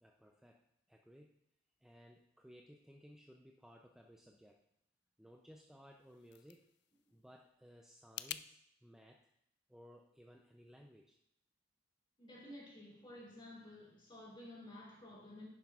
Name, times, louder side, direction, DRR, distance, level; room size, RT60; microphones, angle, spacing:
voice 1, 0.0-1.4 1.8-4.7 5.2-6.6 7.1-9.3 9.7-11.2, equal, 5° right, 0.4 m, -60 dB
sound 1, 5.8-8.5, left 13 dB, 60° left, 0.3 m, -50 dB
voice 2, 12.2-15.5, left 1 dB, 25° left, 2.9 m, -53 dB
10.5 x 10.0 x 2.4 m
head